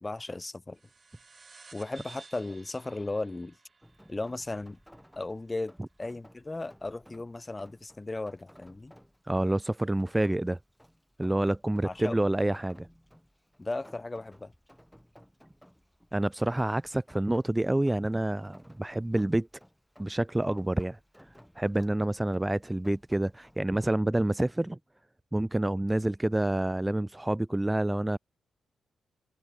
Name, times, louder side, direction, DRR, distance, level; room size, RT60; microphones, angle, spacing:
voice 1, 0.0-0.8 1.7-3.6 4.1-4.8 5.2-5.7 6.0-8.9 11.8-12.2 13.6-14.5, left 2 dB, 25° left, 2.6 m, -36 dB
sound 1, 0.7-5.7, right 4 dB, 45° right, 3.7 m, -55 dB
Rain, 3.8-23.6, equal, ahead, 4.7 m, -58 dB
voice 2, 9.3-10.6 11.2-12.9 16.1-19.5 20.0-21.0 21.6-24.8 25.3-28.2, right 1 dB, 15° right, 0.7 m, -28 dB
hypercardioid pair, 45°, 0 cm